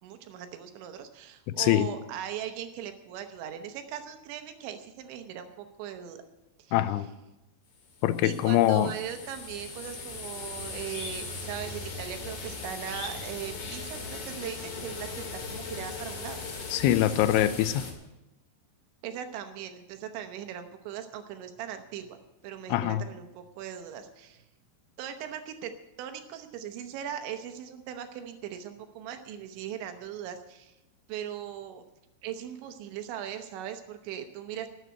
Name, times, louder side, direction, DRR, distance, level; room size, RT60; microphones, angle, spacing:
voice 1, 0.0-6.2 6.6-6.8 8.2-16.4 19.0-22.2 22.4-24.4 25.0-25.7 26.0-30.7 31.1-31.8 32.2-34.7, right 9 dB, 80° right, 7 dB, 3.3 m, -39 dB
voice 2, 6.7-7.0 8.0-8.9 16.7-17.8 22.7-23.0, left 13 dB, 85° left, 13 dB, 3.0 m, -23 dB
sound 1, 7.8-17.9, left 3 dB, 45° left, 2.7 m, -39 dB
12.5 x 8.2 x 9.3 m, 0.96 s
omnidirectional pair, 5.4 m